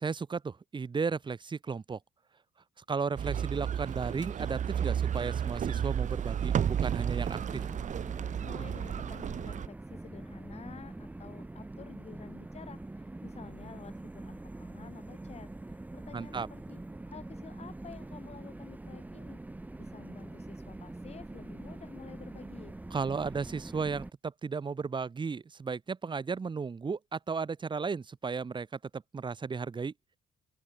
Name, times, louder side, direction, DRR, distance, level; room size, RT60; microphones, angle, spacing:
voice 1, 0.0-2.0 2.9-7.6 16.1-16.5 22.9-29.9, right 5 dB, 25° right, 2.9 m, -34 dB
sound 1, 3.2-9.7, right 8 dB, 45° right, 1.7 m, -32 dB
sound 2, 7.0-24.1, right 2 dB, 10° right, 1.1 m, -44 dB
voice 2, 8.4-15.5 15.9-19.4 19.8-22.8, left 6 dB, 40° left, 3.7 m, -51 dB
open air
cardioid pair, 125°, 17 cm